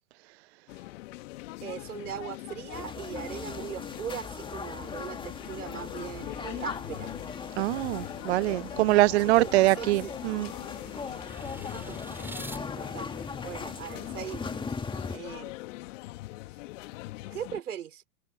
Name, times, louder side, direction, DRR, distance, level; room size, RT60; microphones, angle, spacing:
sound 1, 0.7-17.6, left 20 dB, 55° left, 2.1 m, -42 dB
voice 1, 1.6-7.2 9.2-10.1 11.6-13.1 13.4-14.6 15.1-15.5 17.3-18.0, right 9 dB, 75° right, 4.5 m, -40 dB
sound 2, 2.7-15.2, left 4 dB, 10° left, 2.3 m, -39 dB
voice 2, 7.6-10.5, right 18 dB, 50° right, 0.5 m, -24 dB
sound 3, 9.7-12.6, right 2 dB, 5° right, 4.9 m, -47 dB
open air
hypercardioid pair, 105°, 45 cm